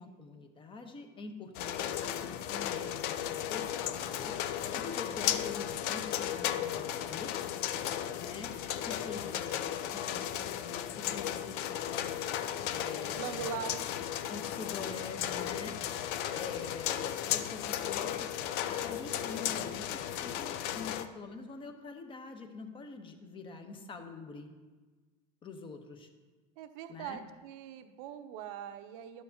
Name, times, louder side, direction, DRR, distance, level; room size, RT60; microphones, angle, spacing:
voice 1, 0.0-4.4 4.7-7.3 8.2-8.5 8.8-12.3 12.7-13.8 14.3-15.8 16.3-18.1 18.7-19.9 20.2-24.5 25.4-26.1 26.9-27.2, left 4 dB, 25° left, 6 dB, 0.9 m, -45 dB
sound 1, 1.5-21.1, left 11 dB, 50° left, 0.5 m, -35 dB
voice 2, 13.1-13.9 26.6-29.2, right 8 dB, 60° right, 9 dB, 0.7 m, -41 dB
11.5 x 6.5 x 2.8 m, 1.3 s
supercardioid pair, 115°, 21 cm